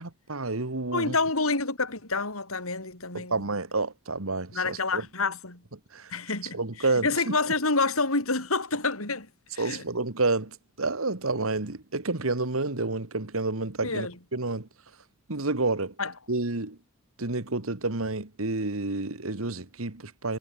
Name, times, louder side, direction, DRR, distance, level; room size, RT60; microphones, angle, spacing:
voice 1, 0.0-1.1 3.1-5.0 5.9-6.1 6.5-7.4 9.6-14.1 14.3-14.7 15.3-15.9 16.3-16.8 17.2-20.4, right 3 dB, 80° right, 2.0 m, -29 dB
voice 2, 0.9-3.4 4.5-5.6 6.1-9.3 9.5-9.8 13.8-14.1 16.0-16.1, left 3 dB, 80° left, 5.8 m, -28 dB
head